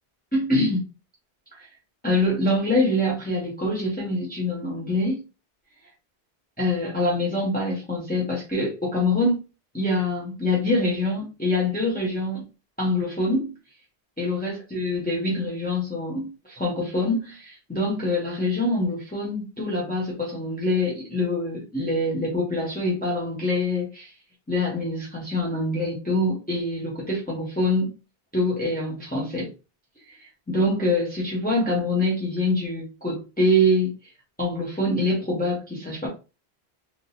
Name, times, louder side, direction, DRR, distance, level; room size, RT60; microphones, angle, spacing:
voice 1, 0.3-0.9 1.6-1.7 2.0-5.2 6.6-9.4 9.7-12.4 12.8-13.5 14.2-24.1 24.5-27.9 28.3-29.5 30.1-33.9 34.4-36.1, left 1 dB, 10° left, 0.9 m, -25 dB
3.8 x 2.7 x 2.2 m
omnidirectional pair, 1.1 m